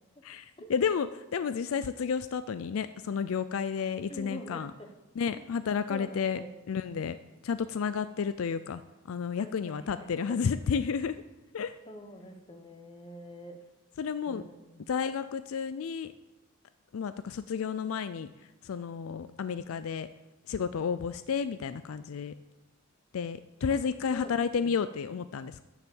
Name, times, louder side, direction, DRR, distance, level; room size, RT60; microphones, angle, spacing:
voice 1, 0.2-4.7 5.2-6.4 6.7-7.2 7.4-8.8 9.1-11.2 11.5-11.8 14.0-14.4 14.9-16.1 16.9-18.3 18.6-20.1 20.5-22.3 23.1-25.6, left 6 dB, 75° left, 13 dB, 0.4 m, -31 dB
voice 2, 4.1-4.9 5.3-5.5 5.9-6.5 9.4-10.4 11.9-13.6 14.3-14.8 23.7-23.8 24.1-24.3 24.6-24.7, equal, 25° left, 5 dB, 1.2 m, -45 dB
9.7 x 7.2 x 7.0 m, 1.0 s
head